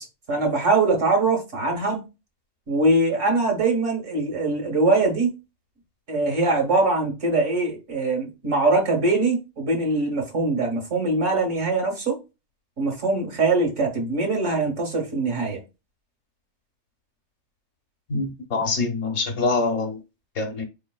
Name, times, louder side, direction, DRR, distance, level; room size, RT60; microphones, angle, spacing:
voice 1, 0.0-2.0 2.7-5.3 6.1-12.2 12.8-15.6, right 3 dB, 65° right, 1.6 m, -22 dB
voice 2, 18.1-20.0 20.4-20.6, left 3 dB, 60° left, 1.1 m, -25 dB
4.2 x 3.2 x 2.2 m
omnidirectional pair, 1.4 m